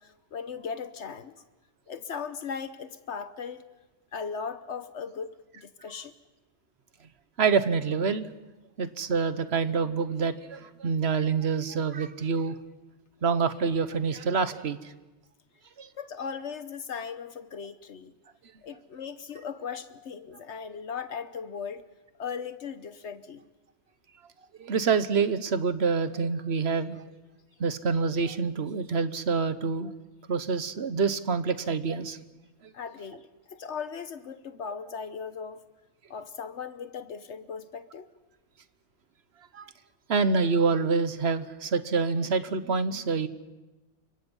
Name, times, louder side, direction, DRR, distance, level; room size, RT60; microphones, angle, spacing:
voice 1, 0.0-1.4 1.9-3.7 4.1-6.1 16.0-18.1 18.6-21.9 22.2-23.5 32.7-35.7 36.1-38.1, left 6 dB, 70° left, 11 dB, 1.2 m, -38 dB
voice 2, 7.4-8.3 8.8-12.5 13.2-14.8 15.8-15.9 24.6-27.0 27.6-29.9 30.3-32.2 39.5-39.6 40.1-43.3, right 5 dB, 65° right, 12 dB, 1.3 m, -26 dB
29.0 x 25.0 x 5.5 m, 1.1 s
omnidirectional pair, 1.2 m